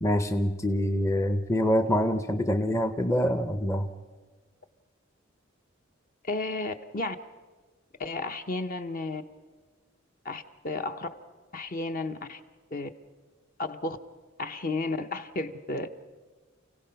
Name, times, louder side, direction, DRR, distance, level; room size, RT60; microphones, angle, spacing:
voice 1, 0.0-3.9, equal, 15° left, 8 dB, 0.7 m, -25 dB
voice 2, 6.2-7.2 8.0-9.2 10.2-11.1 11.5-12.4 12.7-12.9 13.6-14.0 14.4-15.9, left 2 dB, 45° left, 8 dB, 0.9 m, -33 dB
29.0 x 16.5 x 5.8 m, 1.4 s
head